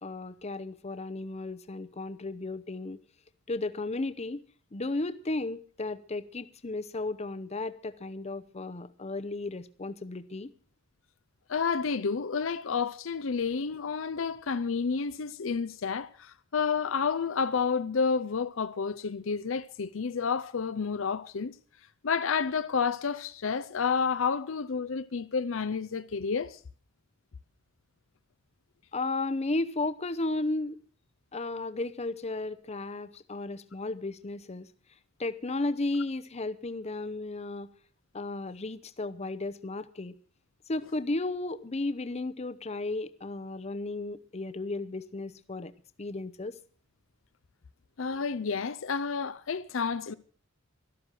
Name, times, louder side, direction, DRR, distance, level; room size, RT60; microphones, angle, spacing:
voice 1, 0.0-3.0 3.5-4.4 4.7-10.5 28.9-30.8 31.3-34.7 35.2-37.7 38.1-40.1 40.7-45.7 46.0-46.5, left 2 dB, 30° left, 0.7 m, -34 dB
voice 2, 11.5-21.5 22.0-26.6 48.0-50.1, left 5 dB, 70° left, 0.6 m, -30 dB
12.5 x 12.5 x 6.3 m
head